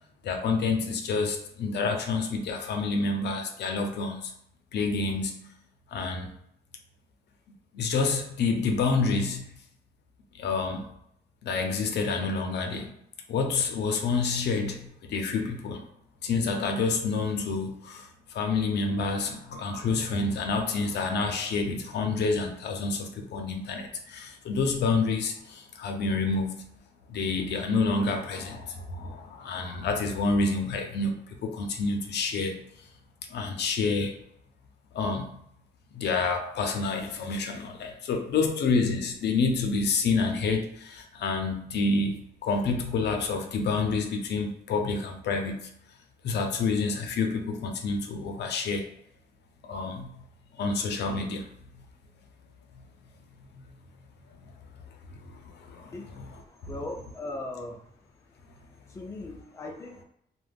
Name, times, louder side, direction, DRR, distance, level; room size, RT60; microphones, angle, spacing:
voice 1, 0.2-4.3 4.7-5.5 5.9-6.3 7.7-9.5 10.3-10.9 11.4-12.9 13.3-15.8 16.2-26.7 27.1-32.9 33.3-34.2 34.9-35.3 35.9-45.7 46.2-48.9 49.6-50.1 50.5-51.5 54.4-54.5 55.1-56.4, left 4 dB, 80° left, 4 dB, 0.5 m, -28 dB
voice 2, 55.9-57.9 58.9-60.0, left 2 dB, 15° left, 1 dB, 0.3 m, -39 dB
2.3 x 2.1 x 3.3 m, 0.71 s
wide cardioid pair, 150°, 17 cm